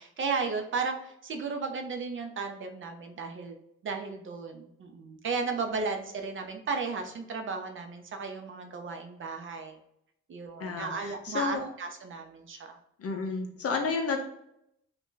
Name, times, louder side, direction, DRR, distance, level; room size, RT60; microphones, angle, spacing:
voice 1, 0.0-3.6 3.8-9.8 10.3-12.8, right 4 dB, 45° right, 4 dB, 0.5 m, -34 dB
voice 2, 10.6-11.7 13.0-14.2, left 4 dB, 50° left, 4 dB, 0.7 m, -31 dB
2.5 x 2.2 x 3.7 m, 0.76 s
cardioid pair, 90°, 30 cm